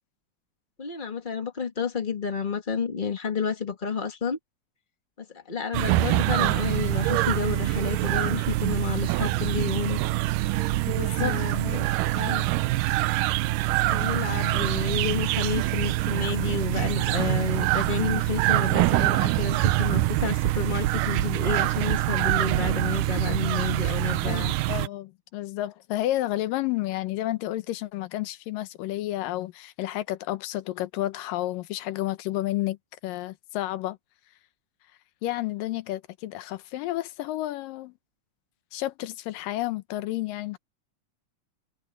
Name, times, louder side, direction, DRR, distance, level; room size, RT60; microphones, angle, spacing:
voice 1, 0.8-4.4 5.2-10.0 10.8-11.9 12.1-12.5 13.9-24.5, left 6 dB, 60° left, 0.5 m, -30 dB
sound 1, 5.7-24.9, right 17 dB, 80° right, 2.2 m, -25 dB
voice 2, 10.9-11.8 24.2-32.8 33.0-34.0 35.2-37.9 38.7-40.6, left 15 dB, 85° left, 2.6 m, -31 dB
omnidirectional pair, 3.9 m